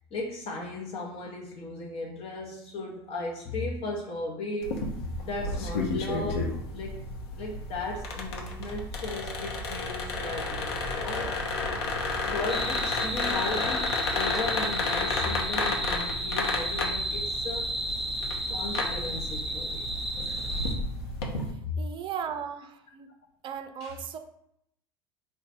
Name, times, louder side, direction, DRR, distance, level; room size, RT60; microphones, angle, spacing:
voice 1, 0.1-4.8 5.2-7.1 7.3-11.4 12.2-17.7 18.5-19.9 23.8-24.0, left 2 dB, 45° left, -1 dB, 0.8 m, -36 dB
sound 1, 4.6-21.5, left 3 dB, 75° left, 0.8 m, -32 dB
sound 2, 12.5-20.7, right 1 dB, ahead, 0.8 m, -33 dB
voice 2, 21.5-23.1 23.4-24.2, right 8 dB, 40° right, 8 dB, 0.5 m, -37 dB
3.9 x 2.2 x 4.1 m, 0.73 s
hypercardioid pair, 80°, 13 cm